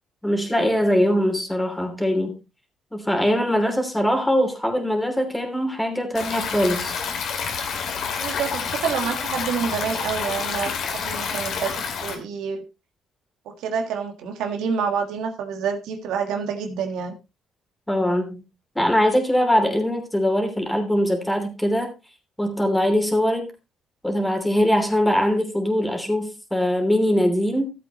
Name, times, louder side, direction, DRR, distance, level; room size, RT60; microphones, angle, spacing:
voice 1, 0.2-2.3 2.9-6.9 17.9-18.4 18.7-21.9 22.4-23.5 24.0-27.7, equal, 5° left, 3.0 m, -22 dB
Stream, 6.1-12.1, left 6 dB, 70° left, 2.4 m, -28 dB
voice 2, 8.2-12.6 13.4-17.1, right 6 dB, 90° right, 1.6 m, -28 dB
14.0 x 8.2 x 3.0 m
cardioid pair, 90°, 0 cm